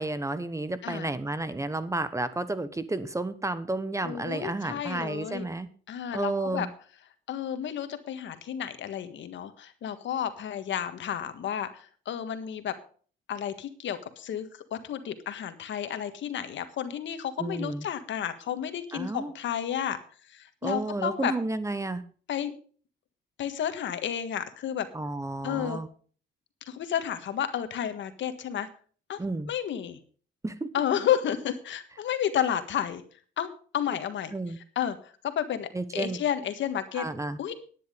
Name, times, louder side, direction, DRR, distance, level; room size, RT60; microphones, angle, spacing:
voice 1, 0.0-5.7 6.1-6.7 17.4-17.8 18.9-19.3 20.6-22.0 24.9-25.9 29.2-29.5 30.4-30.7 34.3-34.6 35.7-36.2 36.9-37.4, right 2 dB, 15° right, 14 dB, 1.0 m, -31 dB
voice 2, 4.0-5.4 5.9-6.7 7.3-12.7 13.3-14.5 14.7-20.0 20.3-21.3 22.3-22.5 23.4-24.9 25.4-25.8 26.7-28.7 29.1-29.2 29.5-30.0 30.7-33.0 33.4-34.3 34.7-35.0 35.3-37.1 37.4-37.5, left 9 dB, 70° left, 9 dB, 1.6 m, -31 dB
10.5 x 10.0 x 5.1 m, 0.42 s
cardioid pair, 90°, 20 cm